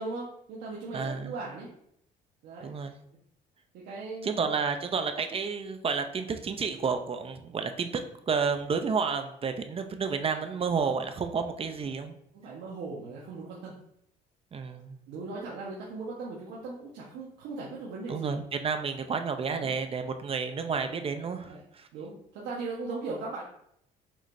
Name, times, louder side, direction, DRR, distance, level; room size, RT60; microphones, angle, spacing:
voice 1, 0.0-1.7 2.4-2.7 3.7-4.5 12.3-13.7 15.1-18.4 19.4-19.7 21.5-21.6 21.9-23.4, right 3 dB, 85° right, -5 dB, 1.3 m, -38 dB
voice 2, 0.9-1.4 2.6-3.0 4.2-8.0 8.3-12.1 14.5-15.0 18.1-21.9, right 5 dB, 35° right, 7 dB, 0.6 m, -31 dB
6.6 x 6.0 x 2.7 m, 0.75 s
cardioid pair, 110°, 17 cm